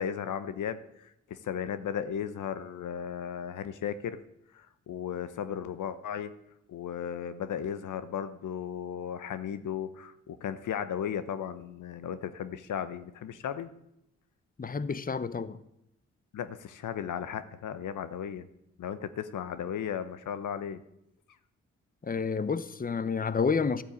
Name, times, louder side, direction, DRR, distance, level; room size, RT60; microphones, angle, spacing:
voice 1, 0.0-4.2 4.5-6.3 6.7-13.7 16.3-18.5 18.8-20.8 23.0-23.1, left 8 dB, 70° left, 1.0 m, -35 dB
voice 2, 14.6-15.6 22.1-23.8, left 5 dB, 25° left, 0.9 m, -29 dB
13.5 x 8.6 x 8.4 m
supercardioid pair, 50°, 32 cm